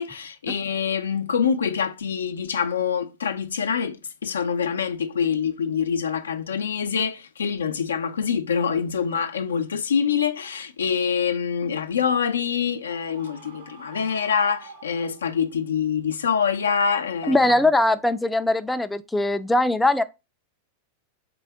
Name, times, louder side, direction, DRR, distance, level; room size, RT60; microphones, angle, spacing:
voice 1, 0.0-4.0 4.2-17.4, left 7 dB, 85° left, 0.4 m, -25 dB
Screaming, 12.8-15.5, right 4 dB, 85° right, 1.2 m, -46 dB
voice 2, 17.3-20.0, left 1 dB, 5° left, 0.3 m, -21 dB
3.7 x 3.4 x 3.4 m
hypercardioid pair, 105°, 0 cm